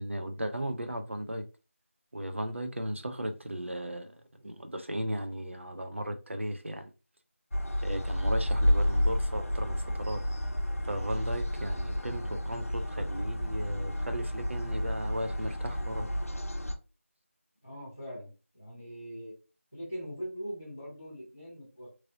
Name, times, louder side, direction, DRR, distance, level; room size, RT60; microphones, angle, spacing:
voice 1, 0.0-1.4 2.1-6.9 7.8-10.2 10.9-16.1, equal, 60° right, 0.6 m, -36 dB
sound 1, 7.5-16.7, left 1 dB, 85° left, 0.7 m, -31 dB
voice 2, 17.6-19.3 19.7-21.9, equal, 10° left, 0.7 m, -41 dB
3.1 x 2.7 x 2.6 m
figure-of-eight pair, 180°, 8 cm